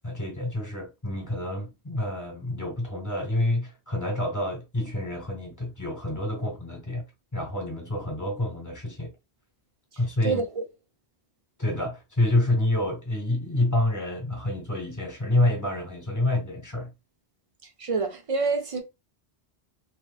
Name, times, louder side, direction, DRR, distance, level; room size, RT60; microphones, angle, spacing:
voice 1, 0.0-9.1 10.0-10.4 11.6-16.9, left 1 dB, 15° left, 1.1 m, -28 dB
voice 2, 9.9-10.6 17.6-18.8, right 4 dB, 40° right, 0.5 m, -28 dB
3.0 x 2.9 x 2.2 m
omnidirectional pair, 1.1 m